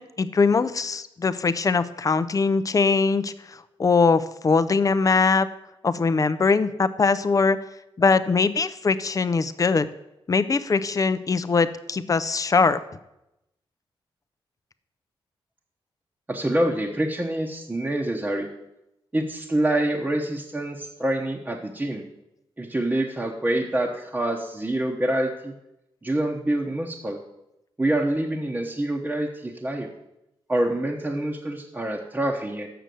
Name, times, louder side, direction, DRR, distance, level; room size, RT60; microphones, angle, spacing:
voice 1, 0.0-3.3 3.8-5.5 5.8-7.6 8.0-9.9 10.3-12.8, left 4 dB, 35° left, 14 dB, 0.5 m, -21 dB
voice 2, 16.3-18.5 19.1-22.0 22.6-25.5 26.0-27.2 27.8-29.9 30.5-32.7, right 1 dB, 15° right, -1 dB, 1.0 m, -26 dB
6.8 x 6.2 x 7.7 m, 0.89 s
cardioid pair, 80°, 10 cm